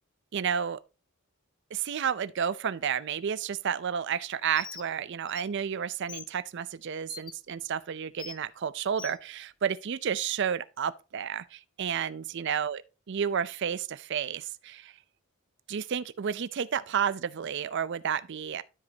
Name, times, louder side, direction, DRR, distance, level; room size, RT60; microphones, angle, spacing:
voice 1, 0.3-0.8 1.7-12.8 13.1-14.9 15.7-18.6, right 7 dB, 55° right, 0.4 m, -31 dB
Bird, 4.5-4.9 5.3-5.4 6.1-6.3 7.1-7.3 8.2-8.4 9.0-9.2, left 7 dB, 20° left, 0.5 m, -42 dB
12.5 x 5.1 x 2.7 m
head